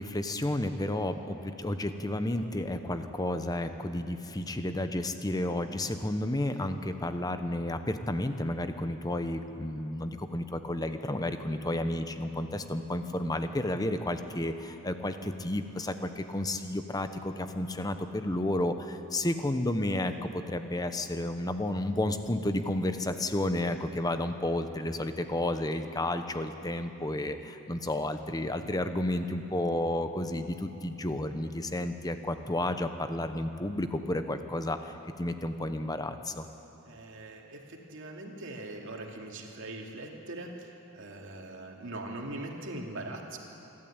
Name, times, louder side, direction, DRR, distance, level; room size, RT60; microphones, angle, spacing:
voice 1, 0.0-36.4, left 1 dB, 15° left, 8 dB, 0.9 m, -32 dB
voice 2, 36.9-43.4, right 2 dB, 60° right, 1 dB, 2.6 m, -41 dB
27.0 x 12.5 x 8.9 m, 3.0 s
head